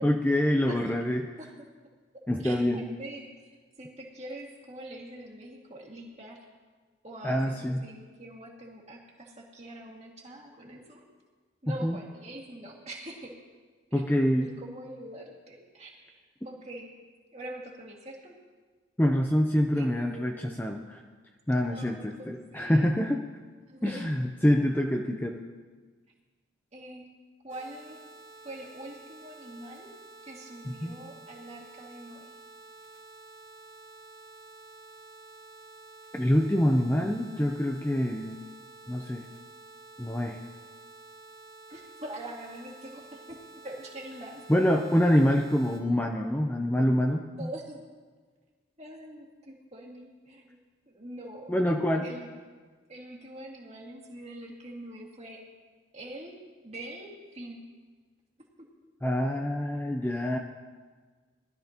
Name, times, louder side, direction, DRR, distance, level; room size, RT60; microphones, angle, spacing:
voice 1, 0.0-1.3 2.3-2.8 7.2-7.9 11.8-12.0 13.9-14.5 19.0-21.0 21.5-23.2 23.8-25.4 30.6-31.0 36.1-38.4 38.9-39.3 40.0-40.4 44.5-47.5 51.5-52.0 59.0-60.4, equal, 10° left, 2 dB, 0.6 m, -26 dB
voice 2, 2.4-3.3 3.8-6.4 7.0-11.0 11.6-13.3 13.9-14.0 14.3-16.9 17.3-18.4 19.8-20.4 21.7-22.9 23.7-24.1 26.7-27.1 27.4-28.0 28.4-32.3 41.7-43.4 43.6-44.4 47.4-47.8 48.8-50.6 50.9-51.5 52.0-52.3 52.9-55.4 55.9-57.7 58.6-58.7, right 1 dB, 35° right, -2 dB, 2.1 m, -44 dB
sound 1, 27.5-45.8, right 3 dB, 90° right, 3.1 m, -50 dB
20.0 x 12.5 x 2.9 m, 1.5 s
head